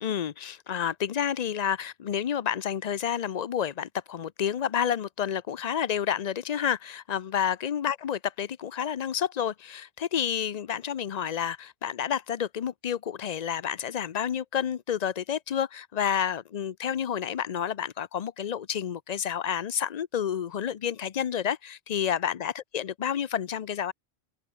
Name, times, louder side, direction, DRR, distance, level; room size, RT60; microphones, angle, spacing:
voice 1, 0.0-23.9, left 9 dB, 45° left, 0.6 m, -30 dB
open air
omnidirectional pair, 1.1 m